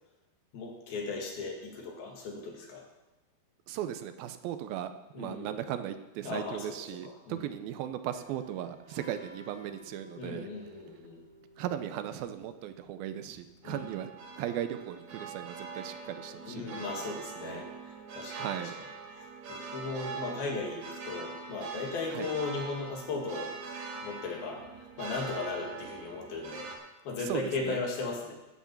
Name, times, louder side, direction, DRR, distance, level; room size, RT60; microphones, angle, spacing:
voice 1, 0.5-2.8 5.1-5.6 6.2-7.5 10.2-11.2 13.6-14.0 16.5-18.7 19.1-23.6 24.0-24.7 25.0-26.7 27.1-28.3, left 4 dB, 70° left, 0 dB, 4.0 m, -37 dB
voice 2, 3.7-4.9 5.2-10.5 11.6-14.1 14.4-16.9 17.4-17.6 18.4-18.7 22.1-22.3 27.3-27.8, right 11 dB, 80° right, 10 dB, 2.4 m, -37 dB
sound 1, 8.1-26.8, right 4 dB, 55° right, 3.2 m, -44 dB
13.0 x 8.7 x 7.1 m, 1.0 s
omnidirectional pair, 4.4 m